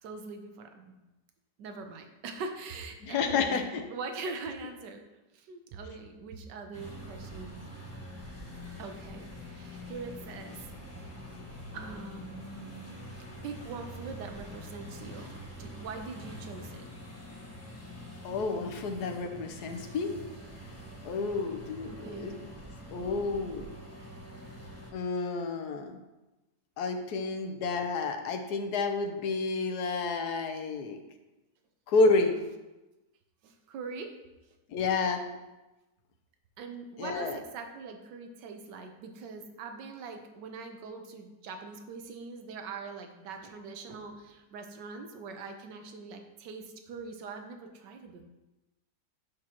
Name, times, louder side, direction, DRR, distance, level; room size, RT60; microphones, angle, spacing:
voice 1, 0.0-1.0 1.6-5.0 5.3-7.6 8.8-10.6 11.7-13.1 13.4-16.9 21.8-22.2 33.4-34.1 36.6-48.2, right 4 dB, 80° right, 5 dB, 1.5 m, -42 dB
voice 2, 3.0-3.8 18.2-20.1 21.0-22.4 22.9-23.7 24.9-26.0 26.8-31.0 31.9-32.3 34.7-35.2 37.0-37.4, left 3 dB, 70° left, 5 dB, 1.3 m, -30 dB
sound 1, 6.7-24.9, equal, 10° left, 1.2 m, -45 dB
9.5 x 6.4 x 2.9 m, 1.0 s
omnidirectional pair, 1.9 m